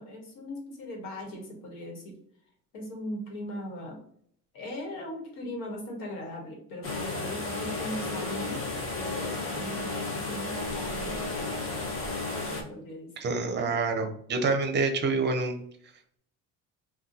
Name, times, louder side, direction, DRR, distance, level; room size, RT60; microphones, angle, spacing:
voice 1, 0.0-2.2 2.7-4.0 4.5-8.7 8.9-11.9 12.7-13.1 13.5-13.8, left 1 dB, 85° left, 1 dB, 1.2 m, -39 dB
sound 1, 6.8-12.6, left 3 dB, 40° left, 0.9 m, -33 dB
voice 2, 13.2-15.6, right 4 dB, 35° right, 6 dB, 0.6 m, -27 dB
2.6 x 2.3 x 3.8 m, 0.64 s
cardioid pair, 115°, 33 cm